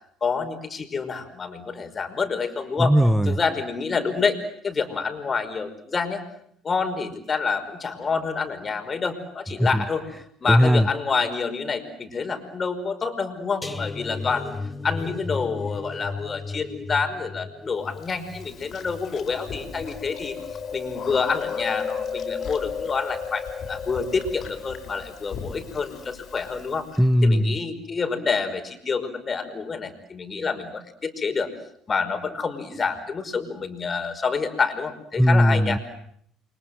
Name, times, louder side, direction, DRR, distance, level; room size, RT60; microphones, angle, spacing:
voice 1, 0.2-2.9 3.3-4.4 4.6-6.2 6.6-10.0 10.4-14.5 14.8-20.4 20.7-26.9 27.2-31.5 31.9-35.8, left 5 dB, 35° left, 8 dB, 5.4 m, -27 dB
voice 2, 2.8-3.3 9.7-9.8 10.5-10.9 27.0-27.6 35.2-35.8, equal, 5° right, 11 dB, 1.5 m, -18 dB
sound 1, 13.6-20.7 21.0-21.3 21.7-21.8, left 3 dB, 15° left, 2.1 m, -36 dB
Chewing mastication, 18.0-27.0, left 6 dB, 50° left, 5.1 m, -34 dB
29.5 x 25.0 x 7.9 m, 0.67 s
hypercardioid pair, 60°, 0 cm